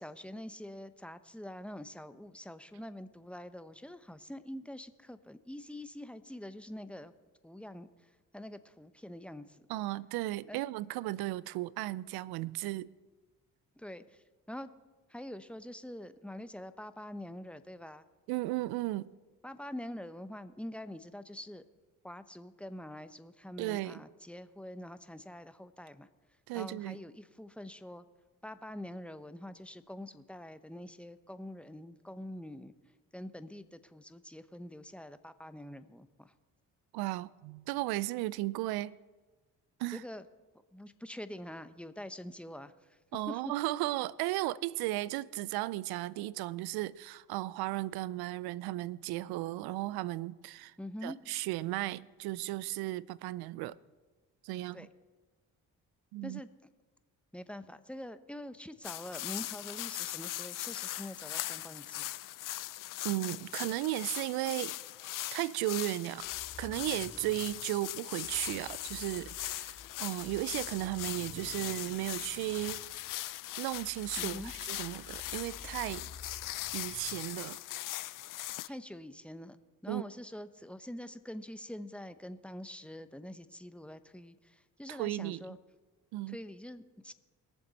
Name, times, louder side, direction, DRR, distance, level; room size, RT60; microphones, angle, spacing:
voice 1, 0.0-7.1 7.4-7.9 8.3-9.7 10.5-10.6 12.4-12.5 13.8-14.7 15.1-18.0 19.4-21.6 22.0-26.1 26.5-28.0 28.4-32.7 33.1-36.3 39.9-40.2 40.7-43.0 43.3-43.4 50.8-51.2 54.7-54.9 56.2-56.5 57.3-62.2 74.2-74.5 78.7-85.6 86.3-87.1, left 1 dB, 5° left, 0.9 m, -45 dB
voice 2, 9.7-12.9 18.3-19.1 23.6-24.0 26.5-27.0 36.9-39.0 39.8-40.0 43.1-50.7 51.0-53.8 54.4-54.9 56.1-56.4 63.0-64.8 65.3-66.3 66.6-72.8 73.6-76.1 76.7-77.6 79.9-80.0 84.9-85.6 86.1-86.4, right 17 dB, 80° right, 0.5 m, -35 dB
sound 1, 58.8-78.7, left 16 dB, 60° left, 0.5 m, -40 dB
sound 2, 66.2-77.2, left 3 dB, 40° left, 2.4 m, -53 dB
21.0 x 7.3 x 4.1 m
supercardioid pair, 55°, 37 cm